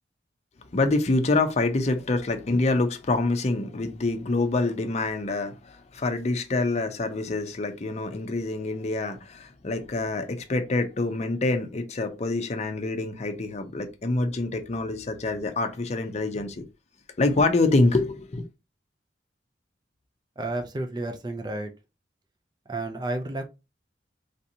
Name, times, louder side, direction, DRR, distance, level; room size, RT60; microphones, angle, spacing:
voice 1, 0.7-16.6 17.2-18.4, left 2 dB, 40° left, 0.5 m, -26 dB
voice 2, 20.4-21.7 22.7-23.5, right 2 dB, 25° right, 0.4 m, -31 dB
3.3 x 2.7 x 2.7 m
head